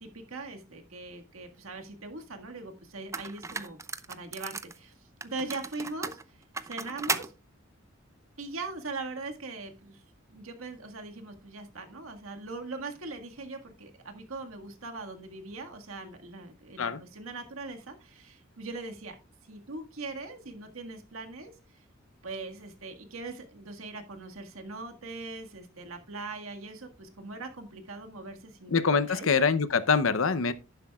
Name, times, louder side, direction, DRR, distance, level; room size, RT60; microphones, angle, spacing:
voice 1, 0.0-3.8 4.1-7.3 8.4-10.0 10.3-19.2 19.4-21.8 22.2-28.7 29.1-29.3, right 3 dB, 85° right, 1.8 m, -41 dB
sound 1, 2.5-2.6 3.1-4.8 5.2-7.3, right 4 dB, 15° right, 0.5 m, -35 dB
voice 2, 28.7-30.5, left 5 dB, 70° left, 0.7 m, -24 dB
11.5 x 10.0 x 2.3 m
head